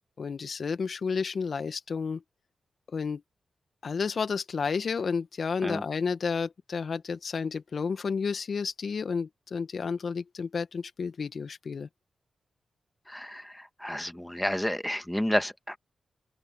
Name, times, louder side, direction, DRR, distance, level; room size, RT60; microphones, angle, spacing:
voice 1, 0.2-2.2 2.9-3.2 3.8-11.9, left 5 dB, 60° left, 1.8 m, -31 dB
voice 2, 13.1-13.4 13.8-15.8, equal, 5° left, 1.8 m, -30 dB
open air
supercardioid pair, 45°, 0 cm